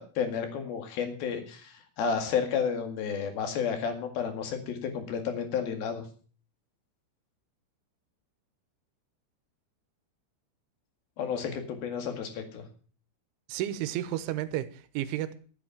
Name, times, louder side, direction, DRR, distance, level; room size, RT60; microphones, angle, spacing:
voice 1, 0.0-6.0 11.2-12.6, left 6 dB, 55° left, 5 dB, 3.4 m, -31 dB
voice 2, 13.5-15.3, right 13 dB, 80° right, 12 dB, 3.2 m, -32 dB
12.5 x 8.9 x 7.2 m, 0.42 s
omnidirectional pair, 5.7 m